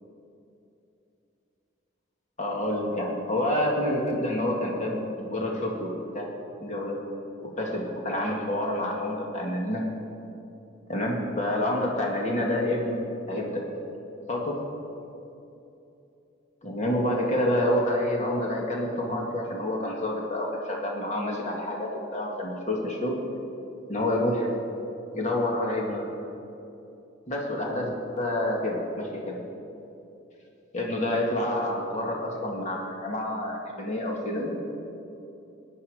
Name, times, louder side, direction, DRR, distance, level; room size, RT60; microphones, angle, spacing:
voice 1, 2.4-6.3 6.6-7.0 7.4-9.8 10.9-13.9 14.3-14.6 16.6-23.1 23.9-24.5 25.1-26.1 27.3-29.4 30.7-34.5, left 1 dB, 40° left, -1 dB, 2.0 m, -28 dB
17.5 x 11.0 x 5.0 m, 2.8 s
head